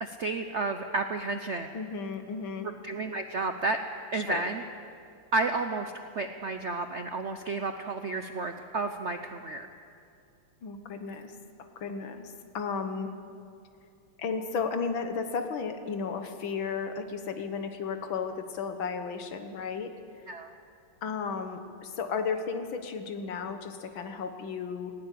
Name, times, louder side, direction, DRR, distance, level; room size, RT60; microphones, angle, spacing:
voice 1, 0.0-1.7 2.8-3.8 4.1-4.6 5.3-9.7 20.3-20.5, right 3 dB, 55° right, 7 dB, 0.8 m, -31 dB
voice 2, 1.7-2.7 4.1-4.4 10.6-11.3 11.8-13.1 14.2-19.9 21.0-24.9, left 5 dB, 85° left, 7 dB, 2.2 m, -34 dB
19.0 x 17.5 x 8.5 m, 2.5 s
omnidirectional pair, 2.1 m